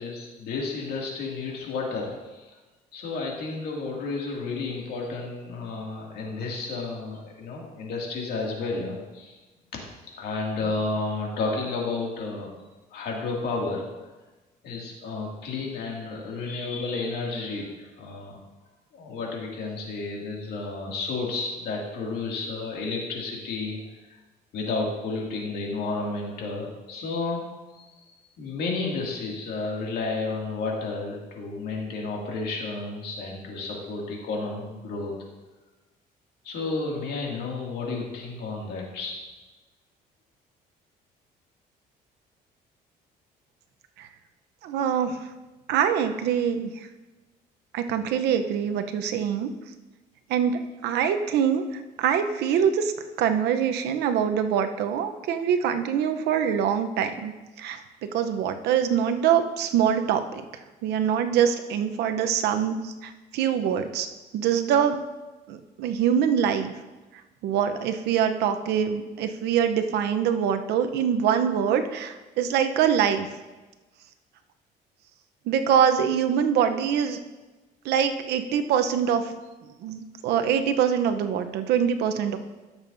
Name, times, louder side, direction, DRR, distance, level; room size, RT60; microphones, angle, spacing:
voice 1, 0.0-2.5 2.9-9.4 10.2-12.5 12.9-13.9 14.6-18.4 18.9-23.8 24.5-27.4 27.8-28.1 28.4-35.1 36.4-39.2, left 3 dB, 70° left, -2 dB, 2.3 m, -31 dB
voice 2, 44.6-45.2 45.7-46.7 47.7-49.5 50.3-52.9 53.2-57.3 57.6-57.8 58.1-60.4 60.8-64.1 64.3-65.0 65.5-66.7 67.4-73.3 75.5-77.2 77.8-79.3 79.8-82.4, right 8 dB, 80° right, 8 dB, 0.7 m, -24 dB
13.5 x 7.2 x 2.6 m, 1.2 s
cardioid pair, 110°, 17 cm